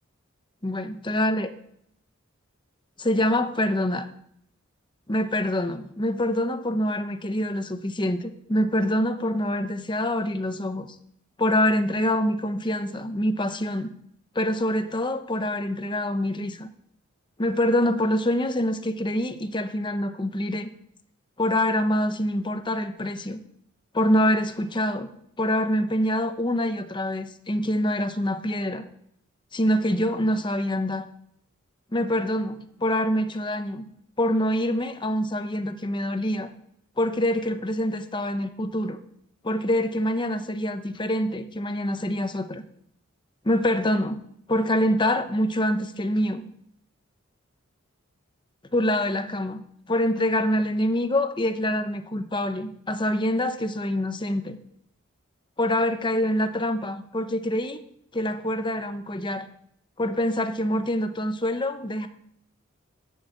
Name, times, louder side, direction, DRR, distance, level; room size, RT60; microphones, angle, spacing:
voice 1, 0.6-1.5 3.0-4.1 5.1-10.9 11.4-13.9 14.3-16.7 17.4-20.7 21.4-23.4 23.9-25.1 25.4-28.9 29.5-31.1 31.9-33.9 34.2-36.5 37.0-39.0 39.4-42.6 43.4-44.2 44.5-46.4 48.7-49.6 49.9-54.6 55.6-57.8 58.1-59.5 60.0-62.1, left 1 dB, 20° left, 9 dB, 0.9 m, -25 dB
11.5 x 6.4 x 8.3 m, 0.71 s
head